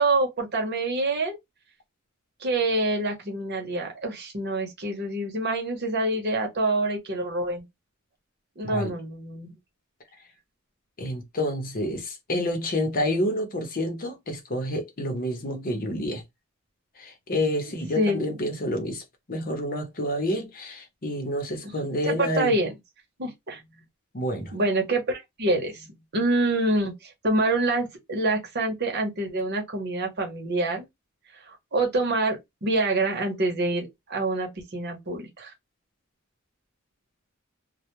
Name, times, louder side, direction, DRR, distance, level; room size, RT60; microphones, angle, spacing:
voice 1, 0.0-1.4 2.4-7.6 8.6-9.5 17.6-18.5 22.0-22.7 23.2-23.6 24.5-30.9 31.5-35.5, right 2 dB, 50° right, 0.9 m, -26 dB
voice 2, 11.0-16.2 17.0-22.6 24.1-24.5, left 1 dB, 40° left, 0.7 m, -29 dB
2.2 x 2.2 x 2.9 m
head